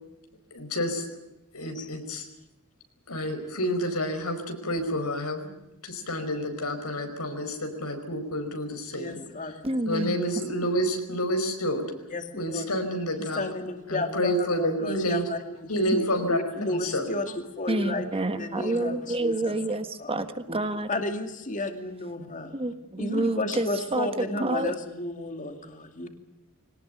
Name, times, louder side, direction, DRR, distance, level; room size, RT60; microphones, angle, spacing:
voice 1, 0.5-1.0 1.5-2.3 3.1-5.5 5.8-9.2 9.8-11.8 12.4-13.4 13.9-15.2 15.7-16.4 16.7-17.0, equal, 90° left, 6 dB, 5.0 m, -29 dB
voice 2, 9.0-9.6 12.1-12.7 13.2-20.1 20.9-22.5 23.0-26.1, left 2 dB, 35° left, 6 dB, 2.5 m, -33 dB
voice 3, 9.6-10.3 15.9-16.0 17.7-20.9 22.5-24.7, right 2 dB, 25° right, 9 dB, 1.5 m, -28 dB
22.5 x 19.0 x 9.2 m, 0.92 s
head